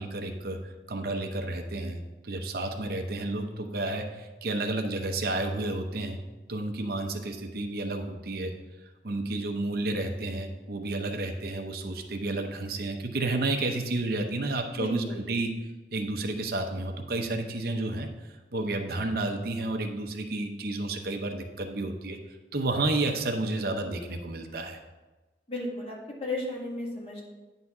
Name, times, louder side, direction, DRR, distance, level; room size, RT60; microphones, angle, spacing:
voice 1, 0.0-2.0 2.2-6.2 6.5-8.5 9.0-15.5 15.9-24.8, right 2 dB, 55° right, 5 dB, 0.7 m, -31 dB
voice 2, 14.8-15.3 25.5-27.2, left 2 dB, 35° left, -3 dB, 1.9 m, -34 dB
9.5 x 4.0 x 5.9 m, 1.2 s
head